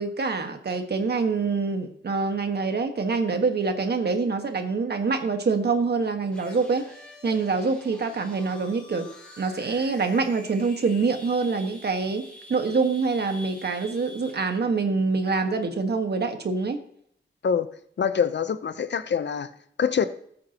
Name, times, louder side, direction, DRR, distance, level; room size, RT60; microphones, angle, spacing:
voice 1, 0.0-6.8 7.2-9.1 9.4-16.8, right 4 dB, 60° right, 1.6 m, -25 dB
sound 1, 6.3-14.6, equal, 5° left, 5.2 m, -47 dB
voice 2, 18.0-19.5 19.8-20.1, left 7 dB, 65° left, 0.8 m, -24 dB
20.0 x 8.5 x 3.0 m
wide cardioid pair, 100°, 19 cm